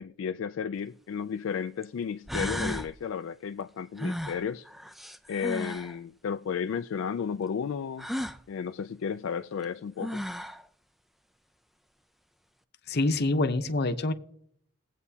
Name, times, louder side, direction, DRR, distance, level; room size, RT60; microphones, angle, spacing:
voice 1, 0.0-4.7 5.3-8.1 8.5-10.2, left 7 dB, 70° left, 0.3 m, -33 dB
sound 1, 0.8-0.9 1.8-1.9 2.3-2.9 4.0-5.9 8.0-8.4 9.6-9.7 10.0-10.6, equal, ahead, 0.4 m, -34 dB
voice 2, 12.9-14.1, left 2 dB, 50° left, 0.8 m, -26 dB
20.0 x 8.2 x 2.8 m
head